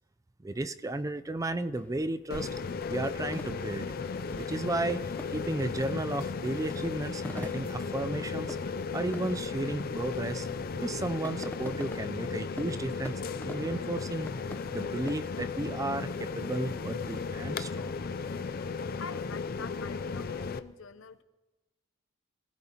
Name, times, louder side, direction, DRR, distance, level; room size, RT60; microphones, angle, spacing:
voice 1, 0.4-2.5 2.9-3.9 4.4-8.6 8.9-10.5 10.8-14.3 14.7-18.0, right 2 dB, 15° right, 0.4 m, -34 dB
sound 1, 1.7-15.1, left 1 dB, 10° left, 0.7 m, -48 dB
sound 2, 2.3-20.6, left 5 dB, 45° left, 0.5 m, -35 dB
voice 2, 19.0-21.2, left 5 dB, 70° left, 0.8 m, -45 dB
27.0 x 15.5 x 2.9 m
head